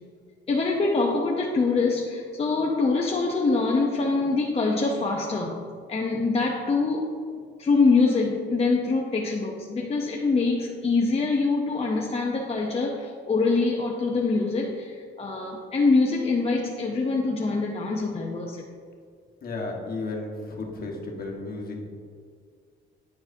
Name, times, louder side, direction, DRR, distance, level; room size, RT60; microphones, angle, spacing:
voice 1, 0.5-5.6 5.9-7.1 7.6-18.6, left 3 dB, 30° left, -1 dB, 0.7 m, -24 dB
voice 2, 19.4-21.9, left 2 dB, 50° left, 0 dB, 1.3 m, -33 dB
9.5 x 4.6 x 2.6 m, 2.1 s
cardioid pair, 90°, 20 cm